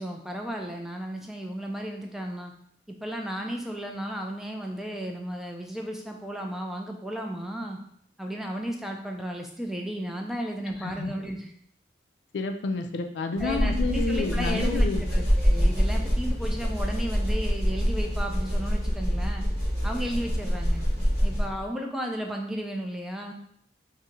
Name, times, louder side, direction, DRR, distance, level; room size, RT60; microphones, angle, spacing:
voice 1, 0.0-2.5 2.9-7.8 8.2-11.5 13.4-19.4 19.8-20.9 21.2-23.3, equal, ahead, 1 dB, 0.3 m, -34 dB
voice 2, 10.8-11.1 12.3-15.1, left 3 dB, 75° left, 5 dB, 0.4 m, -29 dB
sound 1, 13.4-21.7, equal, 35° right, 1.4 m, -25 dB
2.6 x 2.5 x 4.2 m, 0.68 s
head